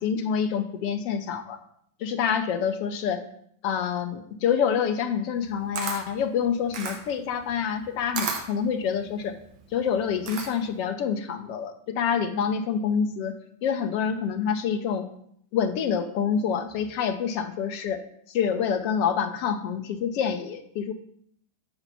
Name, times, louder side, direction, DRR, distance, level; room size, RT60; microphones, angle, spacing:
voice 1, 0.0-1.6 2.0-3.2 3.6-9.4 9.7-15.1 15.5-18.0 18.3-20.9, left 7 dB, 45° left, 8 dB, 0.6 m, -27 dB
Camera, 5.4-10.8, right 5 dB, 45° right, 1.0 m, -35 dB
6.8 x 4.1 x 5.5 m, 0.67 s
figure-of-eight pair, 90°, 0 cm